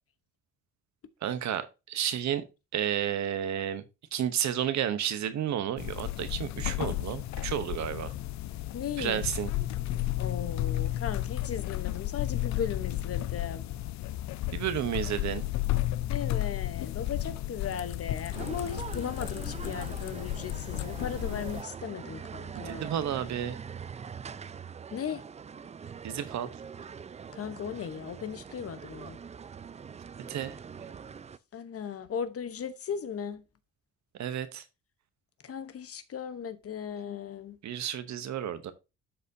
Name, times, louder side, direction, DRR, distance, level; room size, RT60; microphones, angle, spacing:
voice 1, 1.2-2.5 2.7-3.8 4.1-8.1 9.0-9.5 14.5-15.4 22.6-23.6 26.0-26.5 30.3-30.6 34.2-34.6 37.6-38.7, right 10 dB, 65° right, 1.0 m, -31 dB
sound 1, 5.8-21.6, left 14 dB, 65° left, 0.5 m, -33 dB
voice 2, 8.7-9.3 10.2-13.7 16.1-22.9 24.9-25.2 27.3-29.2 31.5-33.4 35.4-37.6, left 7 dB, 50° left, 1.0 m, -37 dB
sound 2, 18.3-31.4, right 6 dB, 25° right, 0.4 m, -43 dB
12.0 x 4.2 x 2.7 m
cardioid pair, 90°, 30 cm